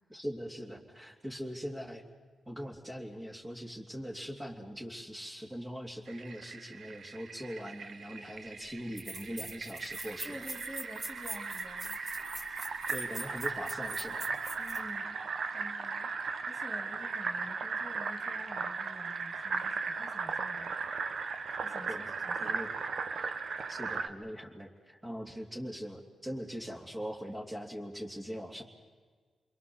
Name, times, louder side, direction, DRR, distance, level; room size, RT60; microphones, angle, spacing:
voice 1, 0.1-2.0 2.5-10.4 12.9-14.4 21.9-22.1 22.4-22.7 23.7-28.6, equal, 15° right, -1 dB, 2.9 m, -41 dB
Fill (with liquid), 6.1-24.1, right 4 dB, 65° right, 1.3 m, -37 dB
sound 1, 8.4-8.5 9.0-14.8, right 2 dB, 45° right, 3.8 m, -43 dB
voice 2, 10.2-12.0 14.6-15.3 15.5-20.8 21.6-22.6, equal, 5° left, 3 dB, 3.3 m, -49 dB
28.0 x 22.0 x 7.3 m, 1.5 s
cardioid pair, 70°, 0 cm